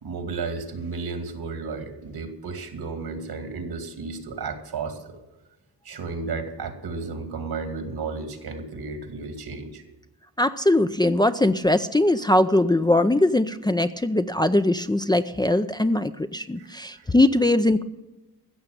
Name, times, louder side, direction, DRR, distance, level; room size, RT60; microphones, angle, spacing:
voice 1, 0.0-5.2 5.8-9.8 16.6-16.7 16.9-17.1, right 4 dB, 75° right, 7 dB, 2.4 m, -33 dB
voice 2, 10.4-17.8, left 1 dB, 10° left, 9 dB, 0.5 m, -21 dB
15.0 x 6.6 x 8.8 m, 1.0 s
cardioid pair, 85°, 38 cm